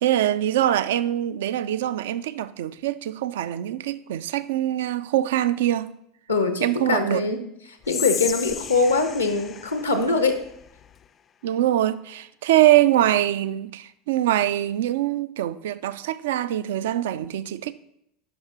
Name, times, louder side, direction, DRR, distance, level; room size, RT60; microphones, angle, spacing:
voice 1, 0.0-5.9 6.6-7.2 11.4-17.7, right 13 dB, 65° right, 0.3 m, -23 dB
voice 2, 6.3-7.4 7.7-10.4, left 3 dB, 85° left, 0.6 m, -23 dB
Whispering, 7.8-11.1, left 8 dB, 35° left, 0.3 m, -34 dB
10.5 x 5.8 x 2.9 m
figure-of-eight pair, 75°, 0 cm